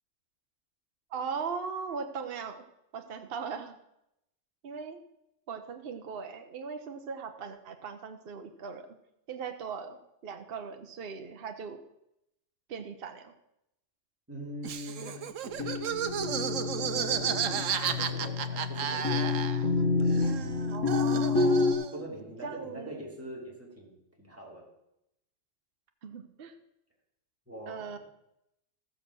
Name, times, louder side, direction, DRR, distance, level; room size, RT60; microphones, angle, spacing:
voice 1, 1.1-2.6 2.9-3.7 4.6-5.0 5.5-8.9 9.3-11.8 12.7-13.3 15.0-15.2 20.7-21.4 22.4-23.0 26.0-26.5 27.7-28.0, right 5 dB, 50° right, 6 dB, 1.1 m, -39 dB
voice 2, 14.3-15.2 16.7-20.1 21.9-24.7 27.5-28.0, right 1 dB, 10° right, -2 dB, 3.2 m, -43 dB
Laughter, 14.6-19.8 20.1-22.0, right 8 dB, 85° right, 1.2 m, -33 dB
sound 1, 15.5-21.7, left 3 dB, 90° left, 2.0 m, -29 dB
15.5 x 6.9 x 6.2 m, 0.84 s
omnidirectional pair, 1.3 m